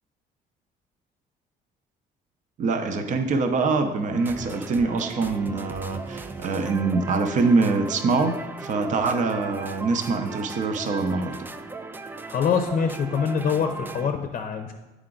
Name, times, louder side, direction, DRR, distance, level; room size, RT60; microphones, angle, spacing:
voice 1, 2.6-11.4, right 4 dB, 45° right, 7 dB, 0.7 m, -24 dB
sound 1, 4.1-14.1, right 3 dB, 10° right, 0.3 m, -37 dB
voice 2, 12.3-14.7, left 6 dB, 45° left, 5 dB, 0.6 m, -24 dB
8.6 x 4.9 x 3.8 m, 1.1 s
cardioid pair, 110°, 17 cm